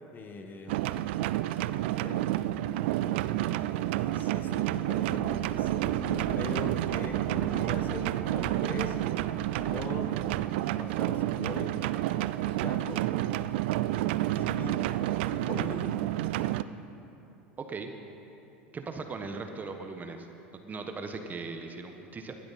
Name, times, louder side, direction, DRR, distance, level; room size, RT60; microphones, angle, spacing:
voice 1, 0.1-1.0 2.0-2.4 3.9-9.0 9.7-10.2 10.7-11.8 12.5-13.1 14.2-14.9 15.3-16.1, left 3 dB, 30° left, 5 dB, 1.4 m, -42 dB
sound 1, 0.7-16.6, right 14 dB, 70° right, 0.4 m, -29 dB
sound 2, 5.0-10.2, right 1 dB, 15° right, 1.9 m, -43 dB
voice 2, 17.6-17.9 18.7-20.3 20.5-22.4, right 4 dB, 30° right, 5 dB, 1.3 m, -38 dB
19.0 x 12.5 x 4.3 m, 3.0 s
hypercardioid pair, 80°, 6 cm